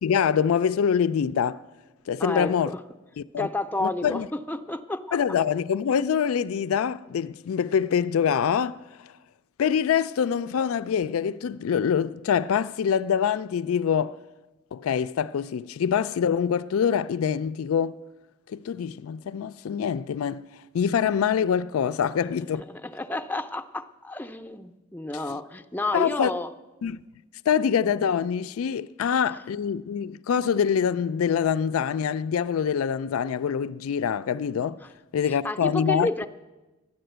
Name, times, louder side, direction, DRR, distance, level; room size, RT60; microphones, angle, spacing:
voice 1, 0.0-1.6 2.1-2.7 3.2-3.5 3.8-4.3 5.1-8.8 9.6-14.2 14.7-18.0 18.5-20.4 20.7-22.6 25.9-26.3 26.8-27.0 27.5-34.8 35.1-36.1, left 7 dB, 90° left, 0.4 m, -25 dB
voice 2, 2.2-2.8 3.4-5.2 22.6-26.5 34.8-34.9 35.2-36.3, left 2 dB, 10° left, 0.5 m, -31 dB
12.5 x 10.0 x 7.9 m
head